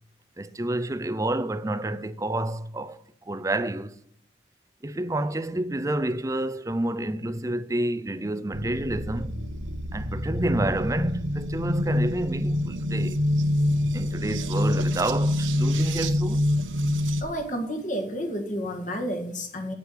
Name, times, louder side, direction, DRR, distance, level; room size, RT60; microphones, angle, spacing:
voice 1, 0.4-4.0 4.8-9.4 9.9-13.2 13.9-16.5, right 1 dB, 15° right, 0.5 m, -29 dB
sound 1, 8.5-17.2, left 1 dB, 90° right, 1.2 m, -26 dB
voice 2, 17.2-19.7, equal, 40° left, 1.9 m, -30 dB
8.3 x 7.9 x 8.5 m
head